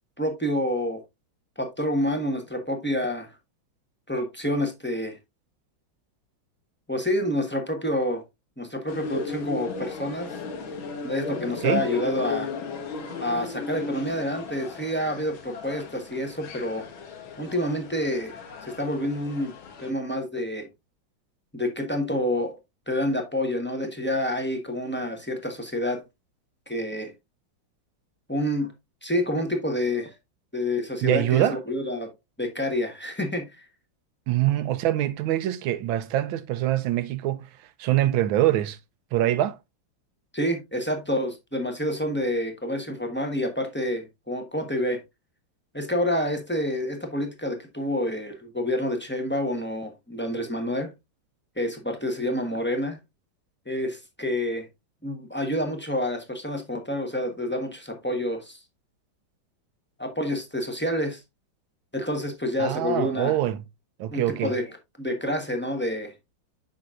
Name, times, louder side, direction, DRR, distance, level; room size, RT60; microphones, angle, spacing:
voice 1, 0.2-1.0 1.6-3.3 4.1-5.2 6.9-8.2 8.6-10.3 11.0-12.5 13.2-16.9 17.4-19.5 19.8-20.7 21.5-22.6 22.9-26.0 26.7-27.1 28.3-28.7 29.0-30.1 30.5-32.1 32.4-33.7 40.3-45.0 45.7-50.9 51.6-53.0 53.7-54.7 55.0-58.6 60.0-61.2 61.9-63.4 64.1-64.6 65.0-66.1, left 1 dB, 10° left, 0.7 m, -28 dB
sound 1, 8.9-19.9, left 4 dB, 90° left, 2.0 m, -36 dB
voice 2, 31.0-31.6 34.3-38.8 39.1-39.6 62.6-63.6 64.0-64.5, right 13 dB, 85° right, 1.5 m, -24 dB
7.8 x 5.7 x 2.4 m
omnidirectional pair, 2.1 m